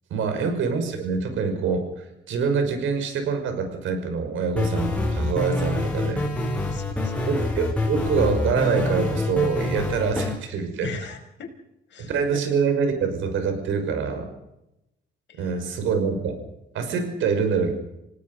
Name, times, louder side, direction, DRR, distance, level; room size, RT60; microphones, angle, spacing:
voice 1, 0.1-6.3 7.3-10.9 12.0-14.3 15.4-16.4 16.7-17.7, right 5 dB, 80° right, 7 dB, 5.8 m, -25 dB
sound 1, 4.5-10.3, left 2 dB, 5° left, 6.5 m, -26 dB
voice 2, 6.6-7.4 10.8-11.5 11.9-12.4 15.3-15.7, left 7 dB, 65° left, 5 dB, 5.3 m, -40 dB
29.0 x 18.5 x 5.6 m, 0.89 s
cardioid pair, 90°, 20 cm